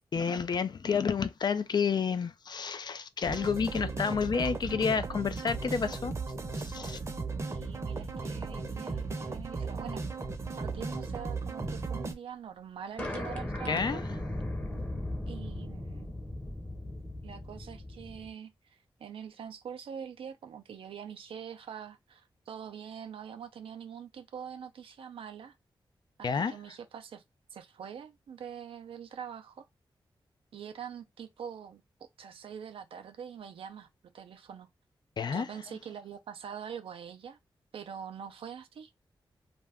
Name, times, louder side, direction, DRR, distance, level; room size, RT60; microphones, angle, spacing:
voice 1, 0.1-6.1 6.5-7.0 13.7-14.0 26.2-26.5 35.2-35.5, left 6 dB, 50° left, 0.4 m, -30 dB
sound 1, 3.2-12.1, right 3 dB, 30° right, 0.7 m, -36 dB
voice 2, 7.5-10.1 10.6-14.0 15.3-16.1 17.2-25.5 26.2-27.2 27.5-29.7 30.5-31.8 32.2-33.9 34.1-34.7 35.3-37.4 37.7-38.9, right 8 dB, 90° right, 0.5 m, -44 dB
sound 2, 13.0-18.3, left 1 dB, 15° left, 0.8 m, -37 dB
2.5 x 2.2 x 3.4 m
cardioid pair, 80°, 9 cm